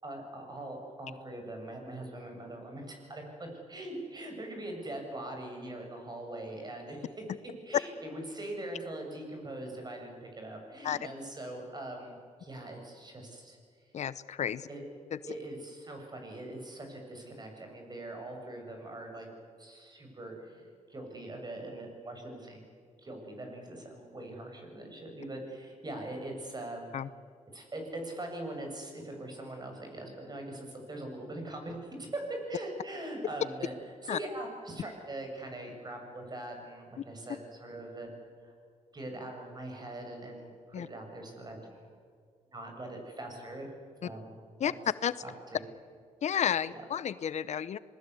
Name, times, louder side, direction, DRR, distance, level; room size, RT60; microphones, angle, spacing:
voice 1, 0.0-7.2 7.6-13.6 14.7-14.9 15.3-19.3 19.6-22.6 23.0-26.9 27.5-33.7 34.0-38.1 38.4-38.5 38.9-41.9 42.5-43.7 44.0-44.7 45.2-45.7 46.7-46.8, right 1 dB, 35° right, 3 dB, 7.8 m, -42 dB
voice 2, 13.9-14.6 26.9-27.1 34.1-34.2 40.7-40.9 44.6-44.7 45.0-45.1 46.2-47.8, left 9 dB, 65° left, 16 dB, 0.8 m, -31 dB
27.0 x 20.0 x 8.3 m, 2.2 s
cardioid pair, 85°, 13 cm